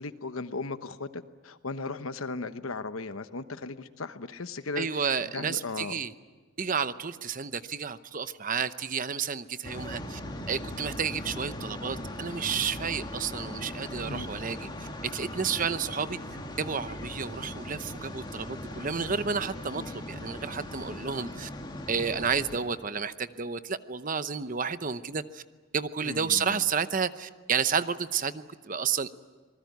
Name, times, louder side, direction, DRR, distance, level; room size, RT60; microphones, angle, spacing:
voice 1, 0.0-5.1 5.3-6.0 14.1-14.3 19.8-19.9 26.0-26.7, left 3 dB, 85° left, 11 dB, 1.1 m, -37 dB
voice 2, 4.8-6.1 6.6-10.2 10.5-14.7 15.1-16.2 16.6-21.5 21.9-25.4 25.7-29.1, right 6 dB, 40° right, 13 dB, 0.8 m, -31 dB
sound 1, 9.6-22.6, left 1 dB, 20° left, 2.5 m, -39 dB
27.0 x 20.0 x 9.4 m, 1.4 s
head